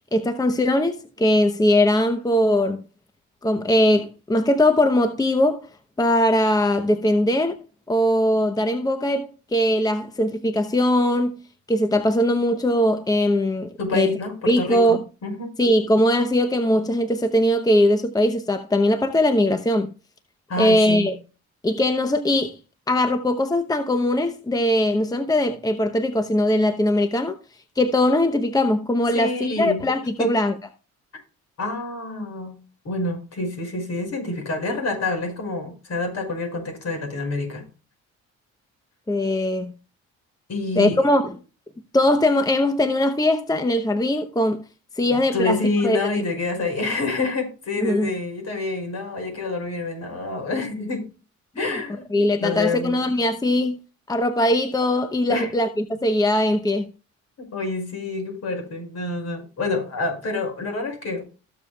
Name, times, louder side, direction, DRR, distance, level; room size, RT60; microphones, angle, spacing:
voice 1, 0.1-2.8 3.4-5.6 6.0-7.6 7.9-11.4 11.7-14.2 14.5-15.0 15.6-19.9 20.6-21.2 21.6-22.6 22.9-27.4 27.8-30.5 39.1-39.7 40.8-41.4 41.9-44.6 45.0-45.6 45.8-46.0 47.8-48.1 51.6-51.8 52.1-53.8 54.1-56.9, left 1 dB, 10° left, 0.8 m, -20 dB
voice 2, 13.8-15.5 20.5-21.1 29.1-29.8 30.2-30.3 31.6-32.6 32.8-37.6 40.5-41.0 45.1-51.1 51.6-53.0 55.3-55.5 57.4-61.2, left 3 dB, 60° left, 5.8 m, -27 dB
17.5 x 7.1 x 2.3 m
cardioid pair, 90°, 30 cm